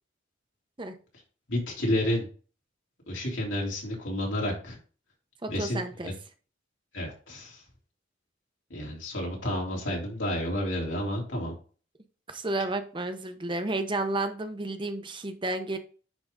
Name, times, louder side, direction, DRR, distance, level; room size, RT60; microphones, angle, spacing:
voice 1, 1.5-2.2 3.1-4.8 5.5-6.1 6.9-7.6 8.7-11.6, left 1 dB, 85° left, -2 dB, 3.4 m, -30 dB
voice 2, 5.4-6.1 12.3-15.8, right 2 dB, 25° right, 8 dB, 0.9 m, -31 dB
9.9 x 3.9 x 3.7 m, 0.38 s
head